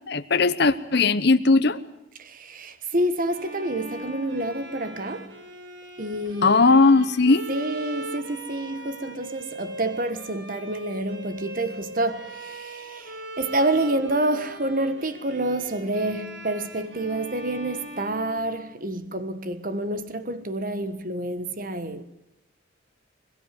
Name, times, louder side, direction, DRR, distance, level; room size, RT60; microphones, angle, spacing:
voice 1, 0.1-1.8 6.4-7.5, left 3 dB, 60° left, 0.9 m, -18 dB
voice 2, 2.2-5.3 6.0-6.6 7.5-22.0, right 1 dB, 45° right, 1.4 m, -28 dB
Bowed string instrument, 3.3-19.0, right 1 dB, 65° right, 3.9 m, -40 dB
22.5 x 22.0 x 9.4 m
head